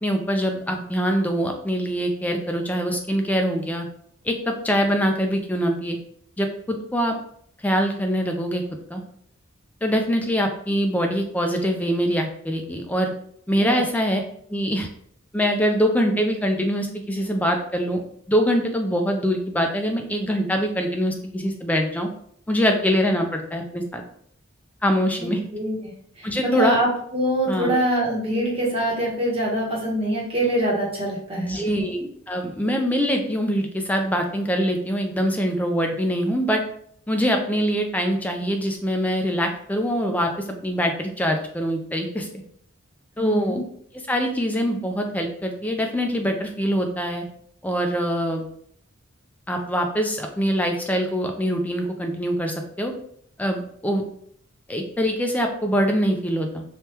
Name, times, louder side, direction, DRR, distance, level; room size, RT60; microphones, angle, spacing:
voice 1, 0.0-3.9 4.2-6.0 6.4-7.1 7.6-8.6 8.9-9.0 9.8-13.1 13.5-14.2 14.5-14.9 15.3-18.0 18.3-22.1 22.5-24.0 24.8-25.4 26.2-26.8 27.5-27.8 31.4-36.6 37.1-42.3 43.2-43.6 44.1-47.2 47.6-48.5 49.5-52.9 53.4-54.0 54.7-56.6, equal, 10° left, 3 dB, 0.3 m, -23 dB
voice 2, 26.2-26.9 27.1-31.9 43.2-43.6, right 1 dB, 30° right, -3 dB, 0.9 m, -24 dB
3.3 x 2.2 x 2.8 m, 0.65 s
head